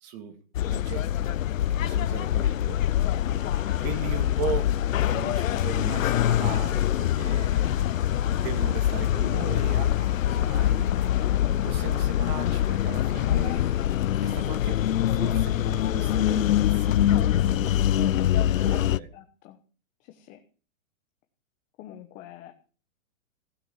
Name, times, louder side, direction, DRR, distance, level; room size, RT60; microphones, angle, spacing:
voice 1, 0.0-0.4 0.7-1.4 1.7-3.1 3.8-4.7 5.0-7.9 8.3-10.9 11.6-13.7 14.2-14.8 15.1-19.1, right 6 dB, 35° right, 8 dB, 2.6 m, -38 dB
sound 1, 0.5-19.0, left 11 dB, 85° left, 0.7 m, -24 dB
voice 2, 3.2-3.6 13.2-13.6 19.1-19.6 20.0-20.4 21.8-22.5, left 13 dB, 20° left, 6 dB, 1.0 m, -45 dB
Wind instrument woodwind instrument, 3.3-14.0, right 5 dB, 55° right, 5.0 m, -52 dB
16.0 x 9.3 x 7.2 m, 0.40 s
hypercardioid pair, 165°, 39 cm